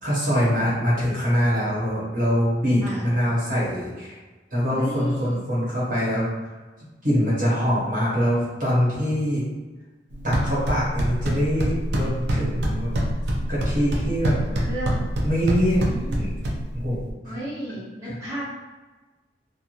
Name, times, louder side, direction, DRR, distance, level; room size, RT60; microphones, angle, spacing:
voice 1, 0.0-4.2 4.5-6.6 7.0-9.5 10.2-12.9 13.5-14.4 15.2-15.8 16.2-16.3 16.7-17.3 18.0-18.1, equal, 50° right, -7 dB, 1.0 m, -24 dB
voice 2, 4.7-5.4 14.4-15.1 15.7-16.3 17.2-18.4, right 1 dB, 20° right, -10 dB, 0.9 m, -34 dB
sound 1, 10.1-17.1, right 1 dB, 65° right, 0.5 m, -25 dB
2.9 x 2.4 x 2.5 m, 1.2 s
head